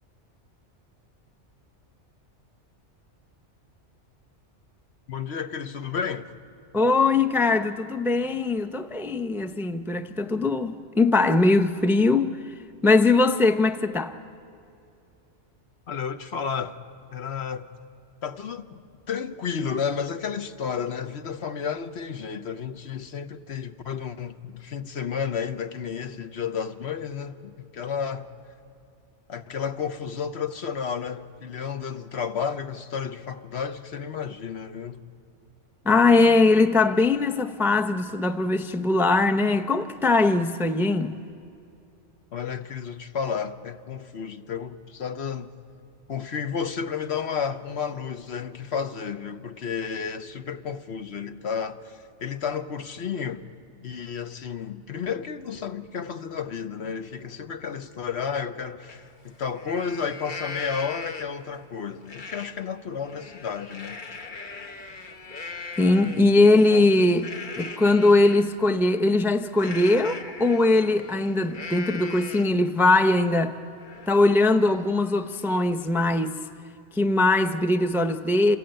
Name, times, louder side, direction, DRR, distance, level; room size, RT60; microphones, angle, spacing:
voice 1, 5.1-6.3 15.9-16.8 17.1-17.7 18.2-18.8 19.1-28.3 29.3-35.0 42.3-45.5 46.1-53.4 53.8-64.0 66.3-66.9, left 6 dB, 65° left, 1.1 m, -32 dB
voice 2, 6.7-12.5 12.8-14.1 35.8-41.2 65.8-73.6 74.1-76.4 76.9-78.6, left 2 dB, ahead, 0.6 m, -21 dB
Livestock farm animals working animals, 58.9-59.0 59.4-61.5 62.1-62.5 62.9-68.5 69.6-72.6 73.1-73.2 73.5-75.9, left 4 dB, 45° left, 1.3 m, -40 dB
27.0 x 19.0 x 9.0 m
omnidirectional pair, 1.2 m